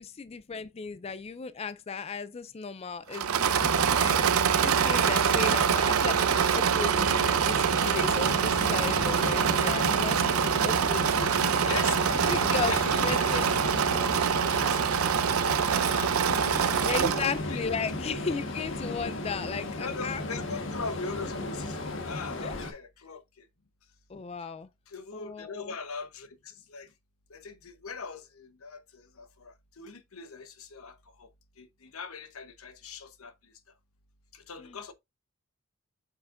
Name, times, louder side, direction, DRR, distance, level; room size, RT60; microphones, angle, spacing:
voice 1, 0.0-10.2 10.6-11.3 12.3-13.4 16.8-20.2 22.4-22.5 24.1-24.7 25.1-25.7 34.6-34.8, left 5 dB, 30° left, 0.3 m, -35 dB
Engine / Mechanisms, 3.1-17.4, right 7 dB, 90° right, 0.6 m, -25 dB
Ocean, 3.6-22.7, left 2 dB, 60° left, 1.4 m, -35 dB
voice 2, 11.6-12.3 12.7-14.9 15.2-17.7 18.2-18.4 19.8-23.4 24.9-26.9 27.3-31.3 31.6-33.3 34.3-34.9, left 4 dB, 85° left, 1.0 m, -41 dB
7.9 x 5.6 x 2.6 m
head